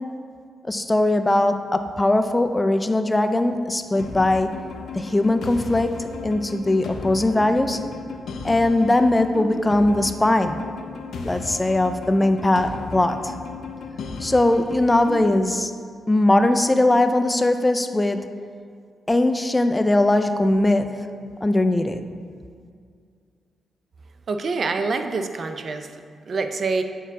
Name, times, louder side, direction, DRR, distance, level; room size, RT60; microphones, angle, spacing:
voice 1, 0.7-4.5 5.0-5.9 6.2-7.8 8.4-10.6 11.2-13.2 14.2-15.7 16.1-18.2 19.1-20.9 21.4-22.0, left 1 dB, 15° left, 8 dB, 0.4 m, -20 dB
sound 1, 4.0-15.4, left 5 dB, 75° left, 0.5 m, -35 dB
voice 2, 24.3-25.9 26.3-26.8, right 4 dB, 55° right, 7 dB, 0.4 m, -26 dB
8.0 x 4.6 x 3.6 m, 2.2 s
cardioid pair, 80°, 0 cm